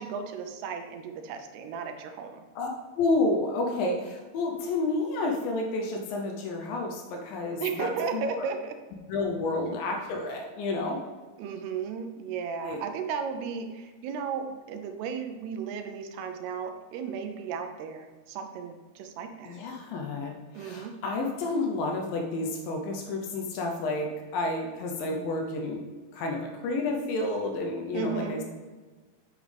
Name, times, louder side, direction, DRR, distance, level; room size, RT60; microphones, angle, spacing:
voice 1, 0.0-2.5 7.6-8.8 9.7-9.8 11.4-19.6 20.5-21.0 27.9-28.4, right 6 dB, 80° right, 7 dB, 2.6 m, -35 dB
voice 2, 3.0-8.4 9.1-11.0 12.6-12.8 19.5-25.8 26.1-28.4, left 2 dB, 75° left, 1 dB, 2.2 m, -30 dB
8.3 x 7.5 x 3.4 m, 1.3 s
omnidirectional pair, 4.8 m